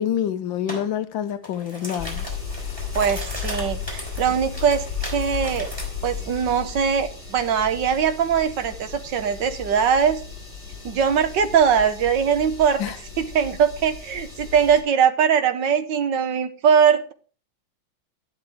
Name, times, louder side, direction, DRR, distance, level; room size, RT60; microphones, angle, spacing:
voice 1, 0.0-2.3 2.7-2.8 12.8-12.9, left 10 dB, 75° left, 1.4 m, -27 dB
sound 1, 0.7-0.9 1.3-5.9, equal, 10° right, 3.7 m, -36 dB
sound 2, 2.0-14.8, left 6 dB, 25° left, 3.8 m, -35 dB
voice 2, 2.9-5.7 6.0-10.2 10.8-17.1, right 7 dB, 65° right, 1.5 m, -21 dB
12.5 x 11.0 x 3.5 m
omnidirectional pair, 2.3 m